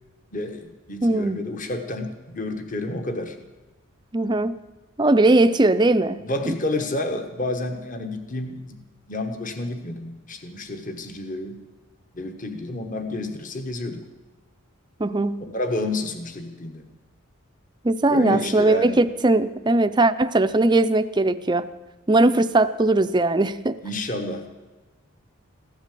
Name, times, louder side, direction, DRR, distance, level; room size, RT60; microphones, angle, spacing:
voice 1, 0.3-3.4 6.2-11.6 12.1-14.0 15.4-16.9 18.1-19.0 23.8-24.5, left 2 dB, 40° left, 7 dB, 1.3 m, -30 dB
voice 2, 1.0-1.4 4.1-4.6 5.0-6.5 15.0-15.4 17.8-21.7 22.1-23.8, right 2 dB, 20° right, 11 dB, 0.5 m, -19 dB
15.5 x 11.5 x 7.6 m, 1.2 s
head